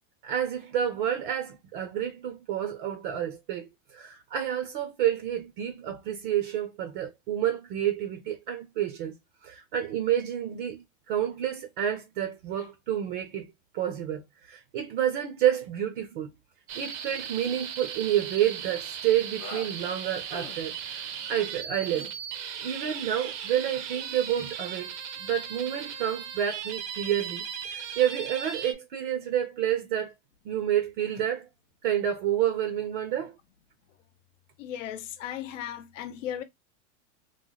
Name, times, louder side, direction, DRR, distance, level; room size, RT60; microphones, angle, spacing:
voice 1, 0.2-9.1 9.4-13.4 13.7-16.3 16.8-22.1 22.6-24.9 25.2-30.1 30.4-31.5 31.8-33.3, right 10 dB, 40° right, 0.6 m, -29 dB
sound 1, 16.7-16.9 17.2-17.5 18.6-18.8 19.4-19.7 20.3-20.6 21.3-21.6 21.9-22.1, left 3 dB, 15° left, 0.3 m, -44 dB
sound 2, 16.7-28.7, right 7 dB, 70° right, 0.8 m, -37 dB
voice 2, 34.6-36.4, left 10 dB, 75° left, 0.8 m, -36 dB
3.2 x 2.1 x 3.8 m
supercardioid pair, 165°, 38 cm